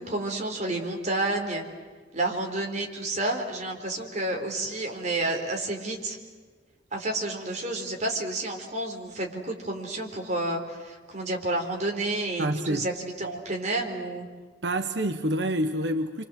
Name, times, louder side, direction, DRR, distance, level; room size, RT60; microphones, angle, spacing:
voice 1, 0.0-1.6 2.1-6.2 6.9-14.3, right 2 dB, 45° right, 1 dB, 4.2 m, -30 dB
voice 2, 12.4-12.9 14.6-16.2, right 1 dB, 80° right, 8 dB, 1.1 m, -27 dB
28.5 x 25.0 x 7.7 m, 1.5 s
head